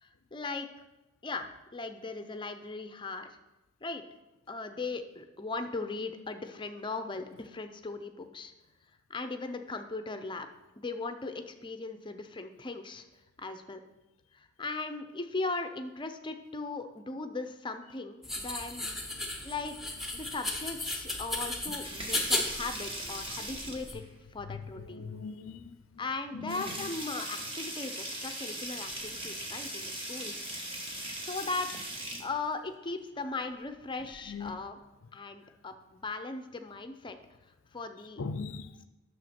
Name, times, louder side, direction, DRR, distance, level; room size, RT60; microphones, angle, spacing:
voice 1, 0.0-0.7 1.2-3.4 3.8-4.0 4.5-8.5 9.1-10.5 10.8-13.0 13.4-13.8 14.3-18.9 19.2-19.8 20.1-24.0 24.3-25.0 26.0-30.5 31.2-34.8 35.1-37.2 37.7-38.2, left 3 dB, 25° left, 0.6 m, -38 dB
sound 1, 18.2-23.9, left 2 dB, ahead, 1.0 m, -35 dB
voice 2, 18.8-19.2 24.5-25.8 26.3-26.6 34.3-34.6 38.2-38.9, left 4 dB, 80° left, 0.5 m, -40 dB
sound 2, 21.6-24.1 25.4-25.5 25.9-26.0 26.4-32.3 33.9-34.5, right 1 dB, 25° right, 1.5 m, -39 dB
9.1 x 6.4 x 4.4 m
head